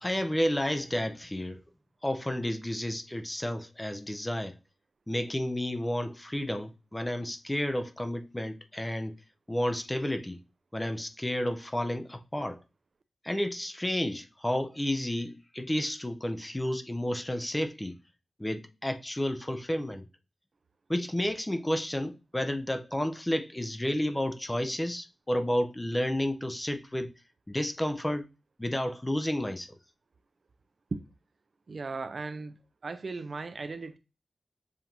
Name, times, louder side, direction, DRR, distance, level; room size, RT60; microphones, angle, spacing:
voice 1, 0.0-1.6 2.0-4.5 5.1-9.1 9.5-10.4 10.7-12.6 13.2-18.0 18.4-20.0 20.9-27.1 27.5-28.2 28.6-29.8, left 1 dB, 10° left, 0.5 m, -31 dB
voice 2, 31.7-32.5 32.8-34.0, right 3 dB, 45° right, 0.4 m, -36 dB
7.1 x 2.6 x 2.8 m
wide cardioid pair, 145°, 0 cm